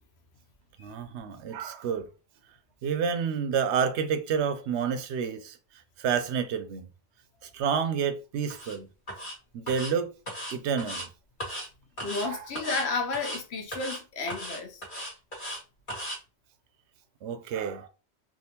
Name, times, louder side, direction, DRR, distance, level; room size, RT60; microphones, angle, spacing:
voice 1, 0.8-2.1 2.8-5.6 6.0-6.9 7.4-8.9 9.5-10.1 10.5-11.1 12.2-12.4 17.2-17.9, right 7 dB, 85° right, 0.9 m, -29 dB
sound 1, 8.5-8.8 9.1-9.4 9.7-9.9 10.3-11.1 11.4-11.7 12.0-12.3 12.6-12.9 13.1-13.4 13.7-14.0 14.3-15.6 15.9-16.2, equal, 50° left, 1.4 m, -36 dB
voice 2, 12.0-14.8, left 3 dB, 75° left, 1.0 m, -32 dB
3.6 x 2.4 x 2.8 m
omnidirectional pair, 1.1 m